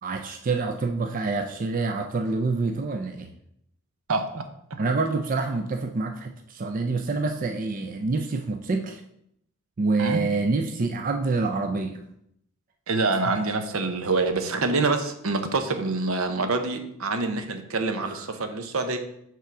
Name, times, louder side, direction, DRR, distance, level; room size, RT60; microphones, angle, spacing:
voice 1, 0.0-3.3 4.8-9.0 9.8-12.0 18.0-18.3, right 3 dB, 40° right, 5 dB, 0.4 m, -27 dB
voice 2, 4.1-4.4 10.0-10.2 12.9-19.0, right 3 dB, 75° right, 7 dB, 0.8 m, -26 dB
5.7 x 3.7 x 5.9 m, 0.74 s
head